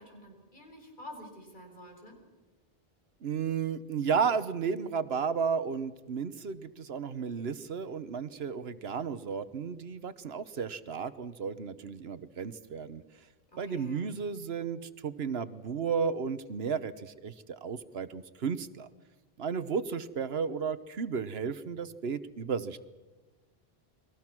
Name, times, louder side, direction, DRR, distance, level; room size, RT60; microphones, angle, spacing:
voice 1, 0.0-2.2 13.5-14.1, left 1 dB, 50° left, 2 dB, 5.6 m, -49 dB
voice 2, 3.2-13.0 13.6-18.9 19.4-22.8, right 6 dB, 75° right, 14 dB, 1.2 m, -33 dB
29.5 x 22.0 x 6.1 m, 1.2 s
omnidirectional pair, 1.0 m